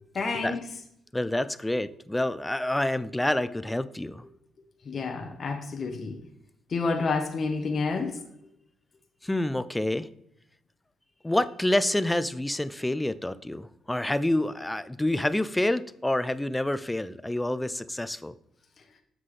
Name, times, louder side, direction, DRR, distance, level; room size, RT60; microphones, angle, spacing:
voice 1, 0.1-0.6 4.8-6.2 6.7-8.2, left 4 dB, 45° left, 4 dB, 1.0 m, -29 dB
voice 2, 1.1-4.2 9.2-10.1 11.2-18.3, left 1 dB, 10° left, 15 dB, 0.4 m, -28 dB
7.4 x 5.9 x 3.2 m, 0.77 s
cardioid pair, 90°, 0 cm